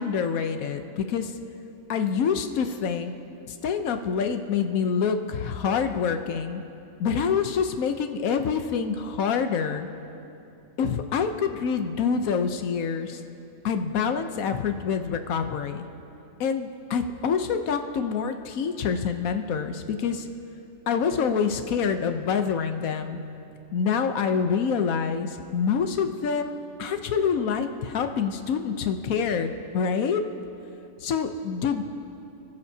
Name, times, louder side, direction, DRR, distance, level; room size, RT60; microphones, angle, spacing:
voice 1, 0.0-1.4 1.9-3.1 3.5-6.6 7.0-9.9 10.8-13.2 13.6-15.9 16.4-20.3 20.9-23.2 23.7-30.2 31.0-31.8, left 6 dB, 90° left, 7 dB, 1.2 m, -26 dB
29.5 x 15.0 x 2.8 m, 2.7 s
omnidirectional pair, 1.4 m